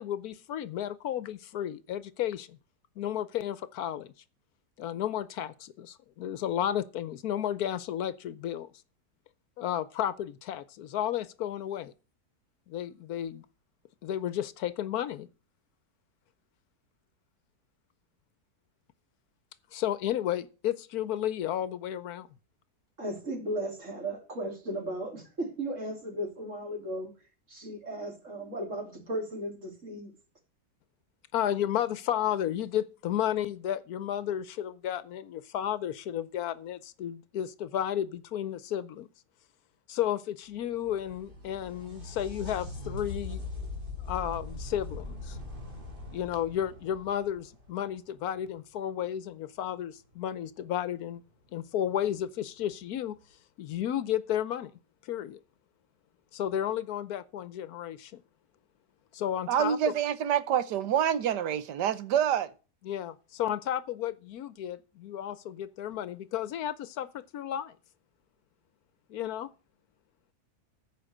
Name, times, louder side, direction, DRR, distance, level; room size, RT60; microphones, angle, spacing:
voice 1, 0.0-2.6 3.0-4.1 4.8-8.7 9.6-11.9 12.7-13.4 14.0-15.3 19.7-22.3 31.3-39.1 39.9-43.4 44.0-45.4 46.1-51.2 51.5-53.2 53.6-54.7 55.0-55.4 56.3-58.2 59.1-59.8 62.8-67.7 69.1-69.5, left 10 dB, 70° left, 1.1 m, -33 dB
voice 2, 23.0-27.1 27.5-30.1, right 1 dB, 45° right, 3.5 m, -36 dB
sound 1, 40.6-48.2 51.6-51.7 52.7-52.8, left 3 dB, 30° right, 2.4 m, -41 dB
voice 3, 59.5-62.5, right 9 dB, 85° right, 1.4 m, -27 dB
13.5 x 5.1 x 6.5 m
omnidirectional pair, 1.8 m